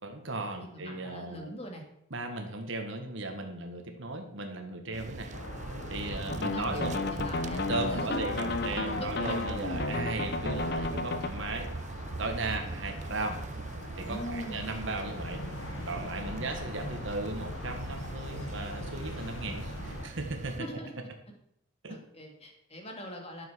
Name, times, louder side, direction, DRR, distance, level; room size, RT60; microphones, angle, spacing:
voice 1, 0.0-1.4 2.1-5.3 5.9-6.9 7.7-11.7 12.2-13.4 13.9-15.4 15.9-20.6 21.8-21.9, right 2 dB, 70° right, 4 dB, 1.7 m, -36 dB
voice 2, 0.6-1.8 6.0-7.6 7.9-8.2 9.0-9.4 14.0-14.6 16.2-16.6 20.6-20.9 21.9-23.5, equal, 30° left, 2 dB, 2.5 m, -42 dB
sound 1, 4.9-20.6, right 3 dB, 35° right, 0.5 m, -41 dB
sound 2, 5.3-20.1, left 2 dB, 80° left, 1.4 m, -42 dB
sound 3, 6.3-11.3, left 2 dB, 55° left, 1.0 m, -33 dB
12.0 x 7.4 x 6.3 m, 0.77 s
head